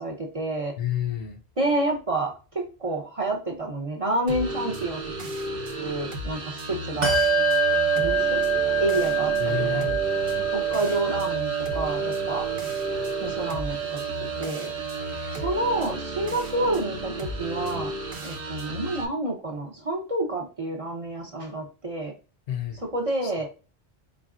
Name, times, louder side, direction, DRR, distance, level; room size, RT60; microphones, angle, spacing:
voice 1, 0.0-0.8 1.6-5.0 5.7-7.2 7.9-8.4 8.8-10.0 10.5-12.5 13.2-14.0 14.4-14.7 15.3-17.9 18.2-22.1 22.7-23.5, right 2 dB, 35° right, 0.7 m, -29 dB
voice 2, 0.8-1.4 9.4-10.0 14.9-15.4 22.5-22.8 23.2-23.3, left 10 dB, 65° left, 0.7 m, -31 dB
sound 1, 4.3-19.0, right 1 dB, 60° right, 1.0 m, -34 dB
Bell, 7.0-17.0, right 5 dB, 85° right, 1.3 m, -26 dB
4.2 x 3.7 x 2.4 m
omnidirectional pair, 1.2 m